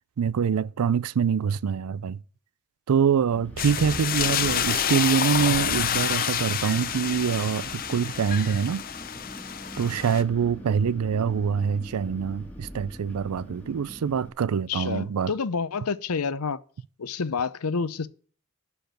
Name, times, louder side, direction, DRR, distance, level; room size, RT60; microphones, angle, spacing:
voice 1, 0.2-2.2 2.9-8.8 9.8-15.3, right 7 dB, 85° right, 0.4 m, -25 dB
Wind, 3.3-14.3, equal, 5° left, 1.9 m, -41 dB
sound 1, 3.6-10.2, left 9 dB, 40° left, 0.6 m, -28 dB
voice 2, 14.7-16.6 17.0-18.1, left 5 dB, 90° left, 0.7 m, -28 dB
12.0 x 4.7 x 7.8 m
head